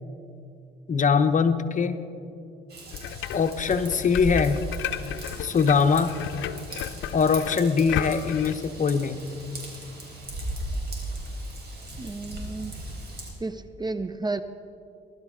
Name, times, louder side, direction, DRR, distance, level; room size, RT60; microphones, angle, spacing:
voice 1, 0.9-2.0 3.3-4.6 5.4-6.1 7.1-9.2, left 5 dB, 40° left, 9 dB, 0.8 m, -22 dB
Raindrop / Vehicle horn car horn honking / Trickle dribble, 2.7-13.3, right 1 dB, 55° right, 3.9 m, -37 dB
sound 1, 2.9-8.5, left 12 dB, 75° left, 0.5 m, -34 dB
voice 2, 12.0-12.7 13.4-14.4, right 3 dB, 20° right, 12 dB, 0.5 m, -32 dB
20.5 x 11.5 x 3.7 m, 2.5 s
cardioid pair, 90°, 20 cm